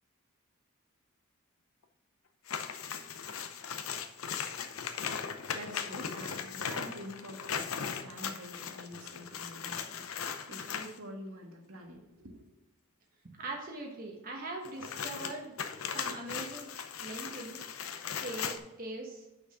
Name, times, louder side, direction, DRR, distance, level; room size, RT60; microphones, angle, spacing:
sound 1, 2.5-11.0 14.6-18.6, left 7 dB, 75° left, 0.7 m, -38 dB
voice 1, 5.3-12.4, equal, 80° right, 2 dB, 1.6 m, -47 dB
voice 2, 13.4-15.5 15.9-16.7 17.0-17.6 18.2-19.3, right 2 dB, 40° right, 0 dB, 1.2 m, -41 dB
6.3 x 6.0 x 5.7 m, 1.0 s
head